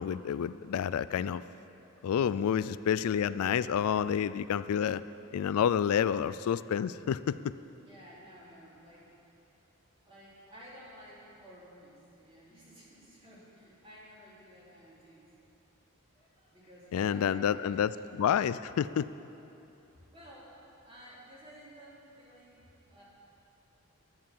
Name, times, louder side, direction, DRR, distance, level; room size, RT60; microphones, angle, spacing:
voice 1, 0.0-1.4 2.0-5.0 5.3-7.6 16.9-19.1, left 8 dB, 85° left, 16 dB, 0.3 m, -29 dB
voice 2, 7.8-9.1 10.0-15.3 16.1-17.9 19.9-20.5 20.8-23.0, equal, 25° right, -7 dB, 3.5 m, -53 dB
11.0 x 10.5 x 7.4 m, 2.9 s
head